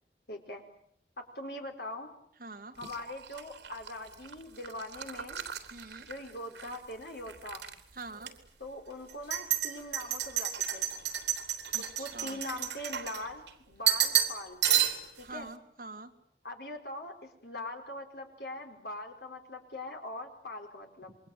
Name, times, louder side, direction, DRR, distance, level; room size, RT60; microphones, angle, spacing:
voice 1, 0.3-0.6 1.2-2.1 2.8-5.4 6.0-7.7 8.6-10.9 12.0-14.6 15.2-15.5 16.4-21.2, left 1 dB, 65° left, 4 dB, 4.9 m, -42 dB
voice 2, 2.4-2.7 5.7-6.1 7.9-8.3 11.7-12.4 15.2-16.1, right 3 dB, 50° right, 4 dB, 2.4 m, -45 dB
sound 1, 2.8-6.8 7.1-7.7 8.2-8.3 9.1-13.5 13.9-14.4 14.6-15.2, right 10 dB, 75° right, 3.4 m, -31 dB
28.0 x 22.5 x 9.2 m, 0.68 s
head